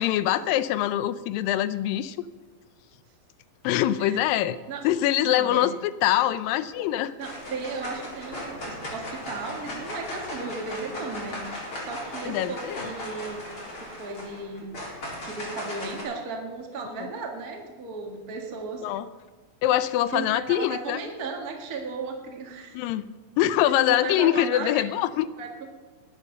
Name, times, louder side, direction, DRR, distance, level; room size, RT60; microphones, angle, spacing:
voice 1, 0.0-2.2 3.6-4.6 4.8-7.1 12.3-12.9 17.0-17.1 18.8-19.1 19.6-21.0 22.7-23.0 23.4-25.3, left 13 dB, 80° left, 15 dB, 2.1 m, -24 dB
voice 2, 5.2-5.7 7.2-11.4 11.8-13.4 13.7-14.7 15.2-18.8 20.1-22.8 23.6-24.8 25.4-25.5, right 4 dB, 35° right, 1 dB, 1.5 m, -35 dB
sound 1, 6.5-6.9 7.2-16.0, left 1 dB, 35° left, 4.8 m, -37 dB
20.5 x 8.3 x 6.6 m, 1.3 s
omnidirectional pair, 4.4 m